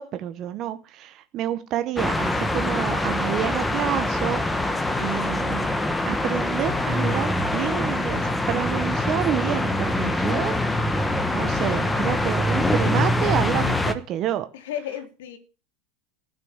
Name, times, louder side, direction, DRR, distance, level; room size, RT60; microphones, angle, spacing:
voice 1, 0.0-4.4 5.0-5.7 6.1-10.6 11.3-14.5, right 11 dB, 35° right, 1.0 m, -29 dB
sound 1, 2.0-13.9, left 1 dB, 5° left, 1.0 m, -24 dB
voice 2, 11.6-12.1 14.5-15.4, left 10 dB, 85° left, 2.7 m, -34 dB
15.5 x 6.3 x 8.7 m
supercardioid pair, 165°, 0 cm